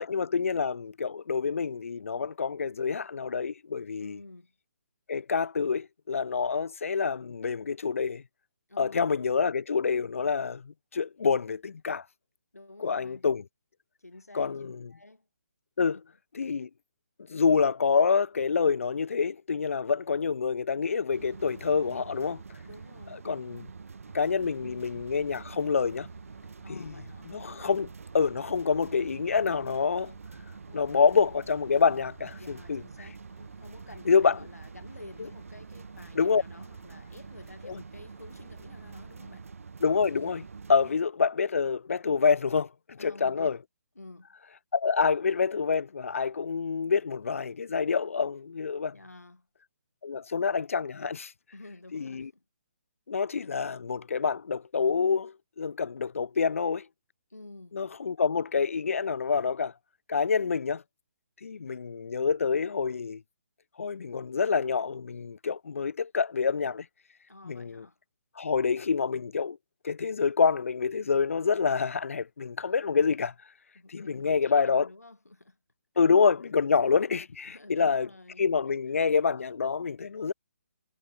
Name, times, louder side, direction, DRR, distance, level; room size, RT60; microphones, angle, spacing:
voice 1, 0.0-4.2 5.1-8.2 8.8-12.0 12.8-13.4 14.3-14.8 15.8-16.0 16.3-16.7 17.3-22.4 23.2-23.7 24.1-26.1 26.7-27.9 28.1-30.1 30.7-32.8 34.1-34.4 36.2-36.4 37.6-37.8 39.8-43.6 44.7-48.9 50.0-51.3 51.9-52.3 53.1-56.9 57.7-59.7 60.1-60.8 61.4-63.2 63.8-66.9 67.4-67.9 68.4-69.6 69.8-73.3 73.9-74.9 76.0-78.1 78.4-80.3, left 5 dB, 60° left, 0.6 m, -27 dB
voice 2, 4.0-4.5 8.7-9.2 12.5-13.3 14.0-15.3 15.9-16.0 22.6-23.2 24.6-24.9 26.6-27.3 30.6-31.2 32.4-39.5 43.0-43.6 43.9-44.3 48.9-49.5 51.5-52.4 57.3-57.8 67.3-68.0 73.7-75.6 77.5-78.4, left 2 dB, 85° left, 1.7 m, -50 dB
sound 1, 21.1-40.9, right 5 dB, 65° right, 0.7 m, -46 dB
sound 2, 24.0-39.1, left 12 dB, 35° left, 7.3 m, -62 dB
figure-of-eight pair, 140°, 8 cm